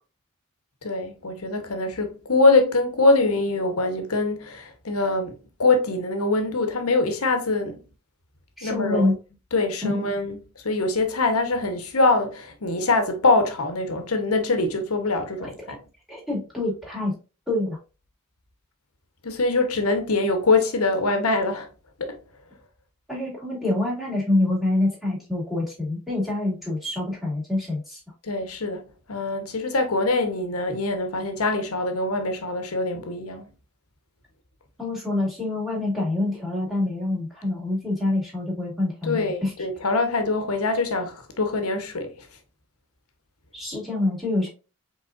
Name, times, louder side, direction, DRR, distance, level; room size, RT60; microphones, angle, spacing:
voice 1, 0.8-7.8 8.6-9.1 9.5-15.8 19.2-21.7 22.0-22.2 28.2-33.5 39.0-42.3, left 3 dB, 85° left, 1.0 m, -23 dB
voice 2, 8.6-9.1 9.8-10.1 15.4-15.5 16.1-17.1 17.5-17.8 23.1-28.0 34.8-39.5 43.5-44.5, left 2 dB, ahead, 2.3 m, -26 dB
5.1 x 3.7 x 2.4 m
head